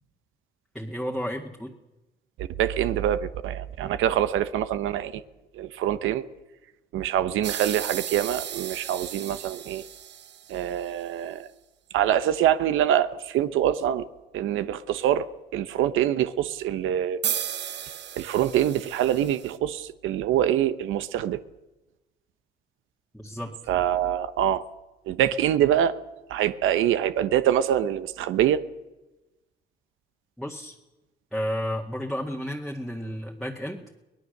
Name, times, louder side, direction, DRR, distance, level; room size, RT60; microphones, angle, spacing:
voice 1, 0.7-1.7 23.1-23.5 30.4-30.8 31.3-33.8, equal, ahead, -1 dB, 1.9 m, -32 dB
voice 2, 2.4-5.2 5.5-6.2 6.9-9.8 10.5-11.5 11.9-14.1 14.3-15.3 15.5-17.2 18.2-21.4 23.7-24.6 25.1-26.0 26.3-28.6, right 11 dB, 85° right, 13 dB, 0.9 m, -25 dB
sound 1, 7.4-10.9 17.2-19.6, right 9 dB, 60° right, 1.1 m, -34 dB
23.5 x 18.5 x 6.6 m, 1.1 s
cardioid pair, 90°, 20 cm